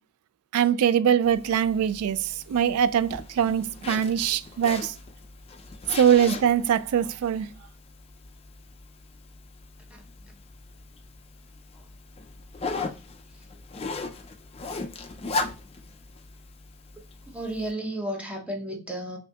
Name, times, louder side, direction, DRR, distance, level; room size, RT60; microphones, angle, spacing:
voice 1, 0.5-4.9 5.9-7.5, right 8 dB, 90° right, 0.3 m, -22 dB
Zipper (clothing), 1.2-17.7, left 3 dB, 25° left, 0.4 m, -38 dB
voice 2, 17.3-19.2, right 1 dB, 5° right, 0.8 m, -33 dB
5.7 x 2.6 x 2.3 m
head